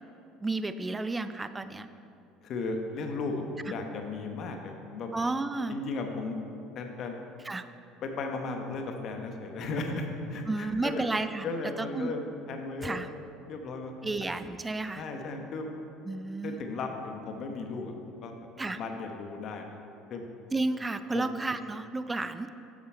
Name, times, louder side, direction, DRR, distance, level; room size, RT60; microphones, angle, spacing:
voice 1, 0.4-1.9 5.1-5.8 7.4-7.6 10.5-11.5 11.8-12.1 12.8-13.1 14.0-15.0 16.0-16.6 18.6-18.8 20.5-22.5, right 2 dB, 15° right, 11 dB, 0.4 m, -32 dB
voice 2, 2.4-5.1 5.7-6.4 6.7-7.1 8.0-11.1 11.4-13.0 13.5-14.1 15.0-15.7 16.4-18.3 18.6-19.8 20.1-20.2 21.1-21.3, left 3 dB, 55° left, 4 dB, 1.1 m, -35 dB
7.5 x 6.7 x 4.5 m, 2.6 s
supercardioid pair, 85°, 0 cm